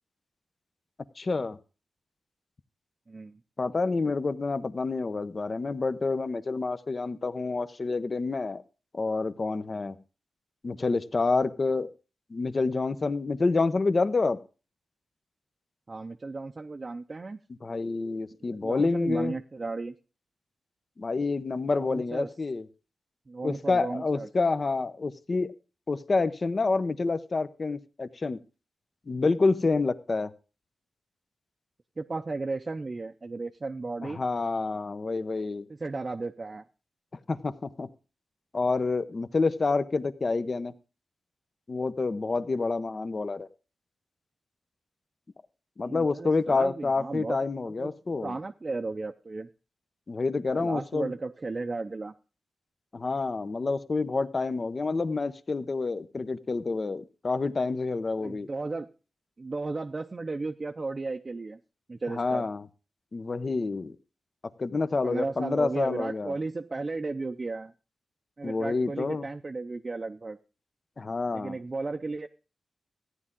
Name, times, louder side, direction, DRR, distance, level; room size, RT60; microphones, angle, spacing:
voice 1, 1.2-1.6 3.6-8.6 8.9-10.0 10.6-11.9 12.3-14.4 17.6-19.3 21.0-22.6 23.4-25.5 25.9-28.4 29.1-30.3 34.0-35.7 37.3-37.9 38.5-40.7 41.7-43.5 45.8-48.4 50.1-51.1 52.9-58.5 62.1-62.6 63.1-64.0 64.6-66.4 68.4-69.3 71.0-71.6, left 3 dB, 45° left, 12 dB, 0.8 m, -28 dB
voice 2, 3.1-3.4 15.9-17.4 18.5-19.9 21.8-22.3 23.3-24.3 32.0-34.2 35.7-36.6 45.8-47.4 47.6-49.5 50.5-52.1 58.2-58.9 59.4-61.6 61.9-62.5 65.0-67.7 68.4-70.4 71.3-72.3, right 3 dB, 35° right, 5 dB, 0.6 m, -34 dB
14.5 x 9.7 x 3.7 m, 0.35 s
cardioid pair, 65°, 0 cm